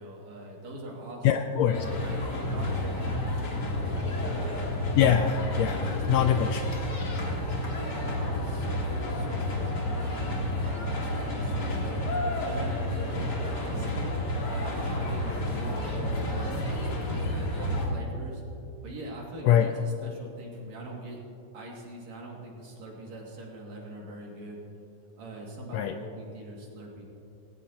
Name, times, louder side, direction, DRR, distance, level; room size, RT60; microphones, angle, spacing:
voice 1, 0.0-5.0 5.7-6.5 7.2-10.2 10.6-14.1 14.5-18.4 18.8-21.2 21.5-24.6 25.2-27.0, right 1 dB, 65° right, -2 dB, 3.5 m, -43 dB
voice 2, 1.2-1.8 5.0-6.9 19.4-19.7 25.7-26.0, left 9 dB, 80° left, 7 dB, 1.6 m, -24 dB
sound 1, 1.7-17.9, left 1 dB, 35° left, 2.4 m, -30 dB
18.5 x 18.0 x 2.9 m, 2.7 s
omnidirectional pair, 3.5 m